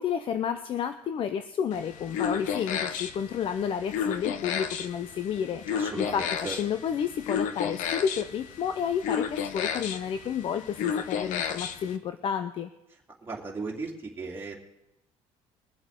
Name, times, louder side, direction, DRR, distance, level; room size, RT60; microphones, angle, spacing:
voice 1, 0.0-12.7, left 8 dB, 40° left, 9 dB, 0.6 m, -31 dB
sound 1, 1.7-12.0, left 7 dB, 70° left, 0.9 m, -33 dB
voice 2, 5.7-6.6 13.2-14.5, right 3 dB, 15° right, -3 dB, 2.6 m, -36 dB
22.5 x 7.8 x 3.8 m, 0.88 s
cardioid pair, 140°, 14 cm